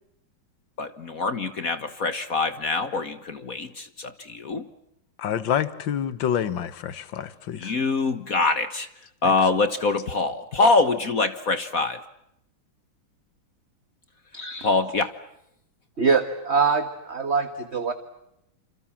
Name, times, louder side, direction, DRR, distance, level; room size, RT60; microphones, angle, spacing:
voice 1, 0.8-4.7 7.5-8.9 9.2-12.0 14.6-15.1, left 3 dB, 45° left, 1.6 m, -24 dB
voice 2, 5.2-7.7, left 9 dB, 65° left, 2.0 m, -27 dB
voice 3, 14.3-14.7 16.0-17.9, right 5 dB, 35° right, 1.6 m, -24 dB
28.0 x 27.5 x 7.3 m
omnidirectional pair, 2.3 m